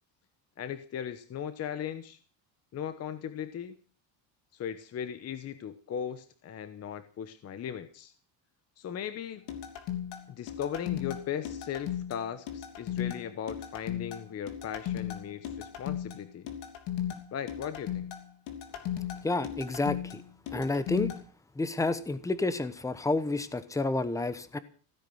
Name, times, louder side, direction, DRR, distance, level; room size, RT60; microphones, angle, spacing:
voice 1, 0.6-2.2 2.7-3.8 4.5-8.1 8.8-9.4 10.3-16.5 17.3-18.1, left 8 dB, 35° left, 12 dB, 1.1 m, -38 dB
sound 1, 9.5-21.2, left 10 dB, 65° left, 3.2 m, -36 dB
voice 2, 19.2-20.2 20.5-21.1 21.6-24.6, left 2 dB, 5° left, 14 dB, 1.0 m, -30 dB
16.0 x 9.6 x 7.8 m, 0.41 s
cardioid pair, 150°, 46 cm